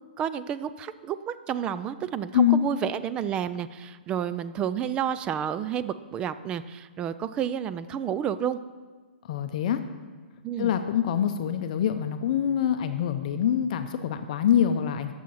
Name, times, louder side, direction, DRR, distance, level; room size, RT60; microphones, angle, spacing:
voice 1, 0.2-8.6 10.4-10.7, right 9 dB, 15° right, 14 dB, 0.3 m, -30 dB
voice 2, 9.3-9.8 10.6-15.1, left 9 dB, 45° left, 8 dB, 0.6 m, -25 dB
10.0 x 7.1 x 5.6 m, 1.4 s
hypercardioid pair, 150°, 5 cm